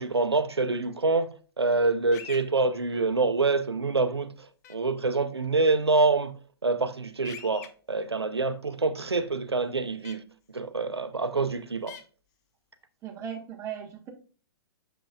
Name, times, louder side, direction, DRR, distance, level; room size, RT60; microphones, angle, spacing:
voice 1, 0.0-4.3 4.7-6.4 6.6-10.2 10.5-12.0, right 3 dB, 85° right, 0.8 m, -26 dB
sound 1, 2.1-2.4 4.6-4.7 7.2-7.7 10.0-10.1 11.9-12.0, left 8 dB, 40° left, 1.0 m, -43 dB
voice 2, 13.0-14.1, right 8 dB, 25° right, 1.4 m, -37 dB
6.8 x 6.0 x 2.4 m
figure-of-eight pair, 120°, 13 cm